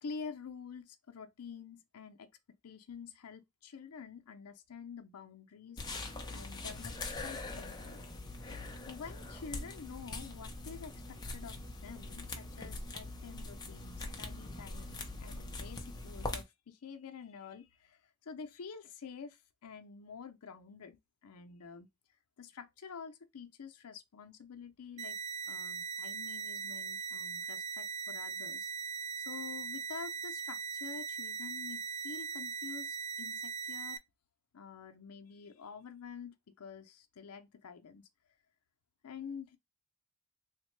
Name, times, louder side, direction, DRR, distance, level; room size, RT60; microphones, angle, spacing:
voice 1, 0.0-2.3 2.6-5.9 6.3-8.0 8.9-11.6 11.8-21.9 22.4-25.2 25.5-28.9 29.2-34.0 34.5-38.1 39.0-39.6, left 5 dB, 80° left, 0.6 m, -48 dB
sound 1, 5.8-16.4, left 2 dB, 20° left, 0.5 m, -43 dB
sound 2, 25.0-34.0, right 6 dB, 70° right, 0.4 m, -40 dB
3.5 x 2.1 x 3.1 m
head